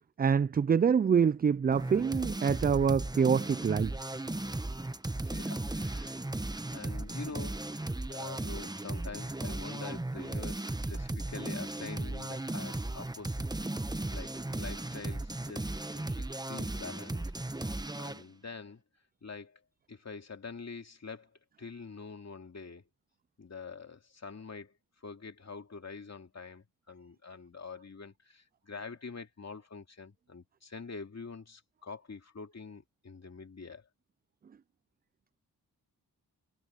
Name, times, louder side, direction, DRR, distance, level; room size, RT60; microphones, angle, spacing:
voice 1, 0.2-4.2, right 6 dB, 25° right, 0.3 m, -26 dB
sound 1, 1.7-18.2, right 2 dB, 10° right, 1.0 m, -36 dB
voice 2, 5.2-6.2 6.7-13.4 14.1-17.2 17.6-18.8 19.2-19.6 19.9-21.3 21.6-22.9 23.4-24.7 25.0-33.9, left 4 dB, 45° left, 2.7 m, -46 dB
cardioid pair, 70°, 39 cm